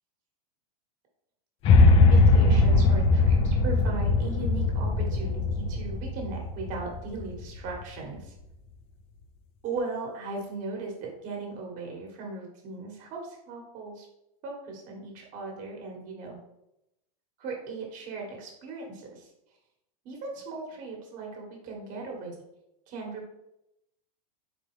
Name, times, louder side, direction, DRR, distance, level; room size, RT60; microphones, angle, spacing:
sound 1, 1.6-7.8, left 3 dB, 30° left, 0.4 m, -21 dB
voice 1, 2.1-8.3 9.6-14.1 14.4-16.4 17.4-19.3 20.0-22.3 22.9-23.3, right 3 dB, 40° right, 0 dB, 1.5 m, -38 dB
4.2 x 3.8 x 3.2 m, 0.84 s
supercardioid pair, 130°, 20 cm